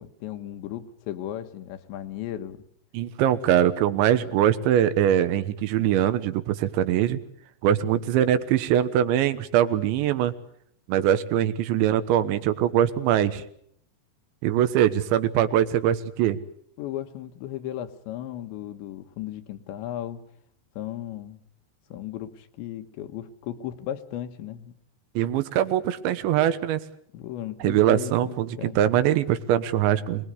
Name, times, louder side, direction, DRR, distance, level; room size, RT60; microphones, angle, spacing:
voice 1, 0.0-2.6 16.8-20.2 20.8-21.4 21.9-24.8 27.1-28.8, left 12 dB, 85° left, 9 dB, 3.5 m, -36 dB
voice 2, 2.9-7.2 7.6-10.3 10.9-13.4 14.4-16.4 25.2-26.8 27.6-30.3, right 11 dB, 85° right, 11 dB, 3.5 m, -22 dB
26.0 x 20.0 x 8.1 m, 0.67 s
omnidirectional pair, 5.1 m